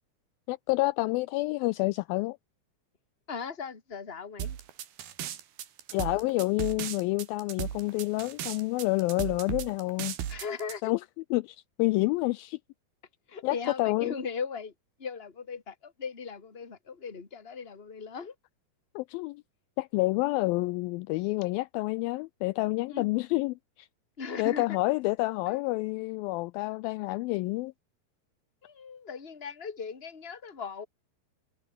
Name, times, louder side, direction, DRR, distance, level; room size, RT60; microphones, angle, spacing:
voice 1, 0.5-2.4 5.9-10.2 10.8-11.0 11.3-12.6 13.4-14.1 19.0-19.4 19.8-23.9 24.4-27.7, left 22 dB, 80° left, 2.2 m, -28 dB
voice 2, 3.3-4.6 10.3-10.9 13.3-18.4 22.9-23.1 24.2-24.8 25.5-25.6 28.6-30.9, left 5 dB, 20° left, 2.2 m, -38 dB
sound 1, 4.4-10.7, right 10 dB, 80° right, 4.1 m, -36 dB
omnidirectional pair, 4.4 m